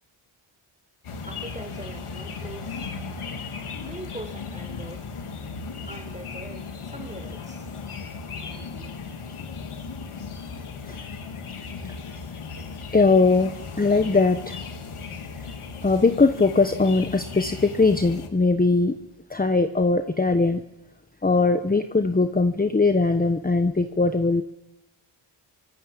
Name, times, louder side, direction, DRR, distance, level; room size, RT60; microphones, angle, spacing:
sound 1, 1.0-18.3, left 5 dB, 80° left, 2.5 m, -36 dB
voice 1, 1.3-3.2 3.8-5.1 5.8-7.7 9.3-9.4 10.2-10.3, right 1 dB, 15° right, 7 dB, 4.2 m, -42 dB
voice 2, 12.9-14.6 15.8-19.0 19.3-20.6 21.2-24.4, left 3 dB, 15° left, 8 dB, 1.1 m, -20 dB
24.0 x 22.5 x 8.6 m, 1.0 s
wide cardioid pair, 90°, 50 cm